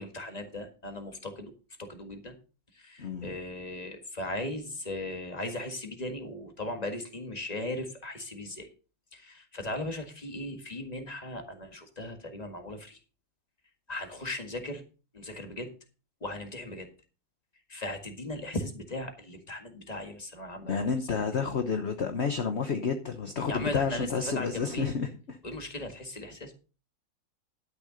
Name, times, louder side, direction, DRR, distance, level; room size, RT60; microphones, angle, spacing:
voice 1, 0.0-1.5 1.8-2.3 2.7-8.7 9.1-13.0 13.9-14.8 15.1-15.7 16.2-16.9 17.7-21.3 23.5-24.9 25.4-26.5, left 1 dB, 25° left, 5 dB, 1.7 m, -38 dB
voice 2, 3.0-3.3 20.6-25.4, left 5 dB, 45° left, 6 dB, 1.1 m, -30 dB
12.0 x 6.7 x 5.2 m, 0.35 s
omnidirectional pair, 1.9 m